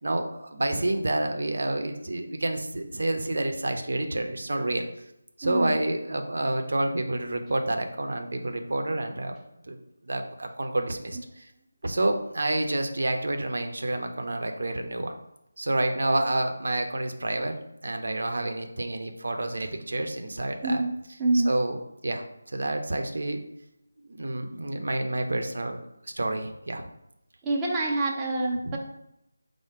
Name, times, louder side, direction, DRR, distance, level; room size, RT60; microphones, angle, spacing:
voice 1, 0.0-4.9 5.4-9.3 9.7-9.8 10.1-11.5 11.8-15.2 15.6-17.6 17.8-20.8 21.3-21.8 22.0-23.4 24.0-25.8 26.2-26.8 28.6-28.8, right 1 dB, 65° right, 5 dB, 0.6 m, -29 dB
voice 2, 5.4-5.8 11.1-11.2 17.3-17.4 20.6-21.5 27.4-28.8, right 2 dB, 10° right, -4 dB, 0.5 m, -26 dB
4.6 x 2.1 x 4.5 m, 0.83 s
figure-of-eight pair, 160°, 0 cm